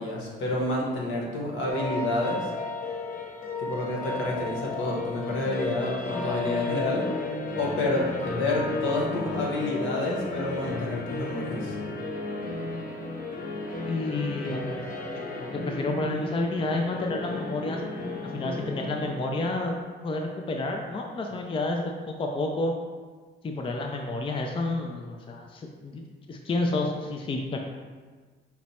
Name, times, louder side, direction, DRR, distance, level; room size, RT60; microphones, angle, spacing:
voice 1, 0.0-2.5 3.6-7.0 7.5-11.7, left 2 dB, 75° left, -2 dB, 1.1 m, -29 dB
sound 1, 1.7-19.8, left 3 dB, 45° left, 0.8 m, -34 dB
voice 2, 13.9-14.8 15.1-17.8 18.2-19.8 20.0-22.7 23.4-27.6, left 2 dB, 25° left, 2 dB, 0.4 m, -30 dB
5.7 x 2.1 x 4.2 m, 1.5 s
cardioid pair, 90°, 20 cm